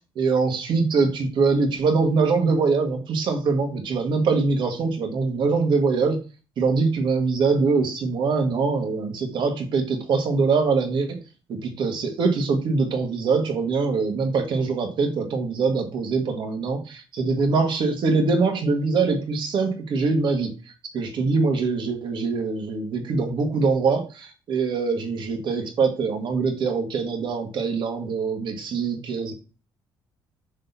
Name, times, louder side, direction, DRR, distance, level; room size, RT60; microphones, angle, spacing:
voice 1, 0.2-6.2 6.6-11.2 11.5-20.5 20.9-29.3, right 4 dB, 65° right, 4 dB, 1.8 m, -23 dB
6.3 x 4.1 x 4.0 m, 0.33 s
cardioid pair, 100°, 9 cm